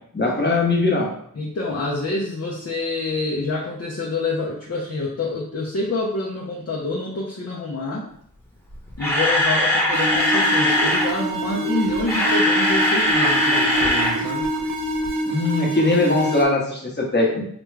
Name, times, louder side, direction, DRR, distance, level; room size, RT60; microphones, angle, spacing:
voice 1, 0.1-1.1 15.3-17.5, left 2 dB, 30° left, -2 dB, 1.0 m, -20 dB
voice 2, 1.4-8.1 9.0-14.5, left 2 dB, 45° left, -4 dB, 0.6 m, -27 dB
Camera, 8.7-11.1 11.9-14.2 14.4-14.6 15.0-15.1, left 1 dB, 5° left, 1.0 m, -20 dB
sound 1, 9.9-16.4, right 1 dB, 70° right, 0.7 m, -25 dB
4.9 x 2.3 x 3.2 m, 0.67 s
wide cardioid pair, 75°, 34 cm